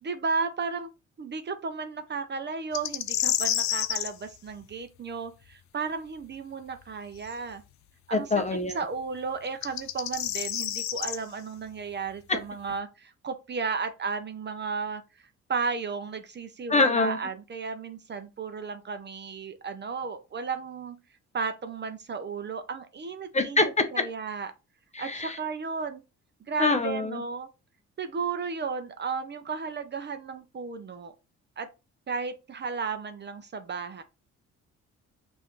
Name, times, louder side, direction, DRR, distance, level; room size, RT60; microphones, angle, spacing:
voice 1, 0.0-0.9 1.2-7.6 8.1-8.4 8.7-21.0 21.3-24.5 25.0-26.0 26.5-27.5 28.0-31.1 31.6-31.7 32.1-34.0, right 5 dB, 35° right, 0.6 m, -34 dB
sound 1, 2.7-4.1 7.3-7.4 9.5-11.2, left 12 dB, 65° left, 0.5 m, -29 dB
voice 2, 8.1-8.7 12.3-12.4 16.7-17.2 23.3-24.0 24.9-25.4 26.6-27.2, left 3 dB, 25° left, 0.7 m, -25 dB
5.4 x 2.6 x 3.1 m
cardioid pair, 90°, 30 cm